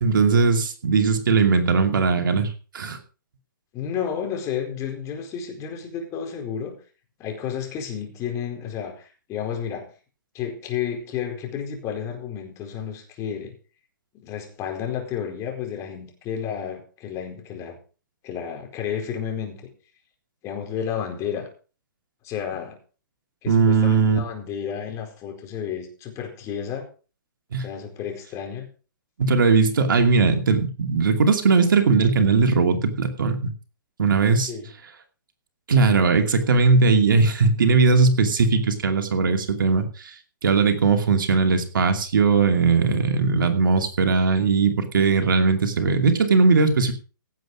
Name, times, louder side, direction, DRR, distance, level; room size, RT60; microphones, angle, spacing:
voice 1, 0.0-3.0 23.5-24.2 27.5-27.6 29.2-33.5 34.0-34.5 35.7-40.1 40.4-46.9, right 4 dB, 70° right, 2.5 m, -19 dB
voice 2, 3.7-6.8 7.2-9.9 10.3-13.5 14.2-17.8 18.2-19.6 20.4-21.5 22.2-22.8 23.4-26.9 27.6-28.7 34.5-34.7, left 8 dB, 25° left, 4.5 m, -31 dB
17.0 x 7.8 x 5.0 m
hypercardioid pair, 130°, 11 cm